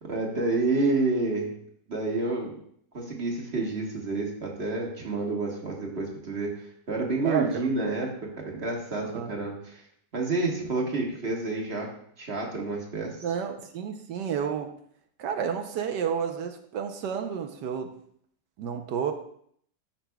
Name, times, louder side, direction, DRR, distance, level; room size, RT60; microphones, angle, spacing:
voice 1, 0.0-1.5 1.9-2.6 2.9-6.6 6.9-8.1 8.4-9.8 10.1-11.9 12.2-13.2, right 3 dB, 40° right, -1 dB, 1.6 m, -29 dB
voice 2, 7.2-8.0 9.0-9.3 13.2-14.7 15.2-17.9 18.6-19.1, right 7 dB, 80° right, 5 dB, 1.3 m, -31 dB
13.0 x 5.9 x 2.3 m, 0.65 s
omnidirectional pair, 1.9 m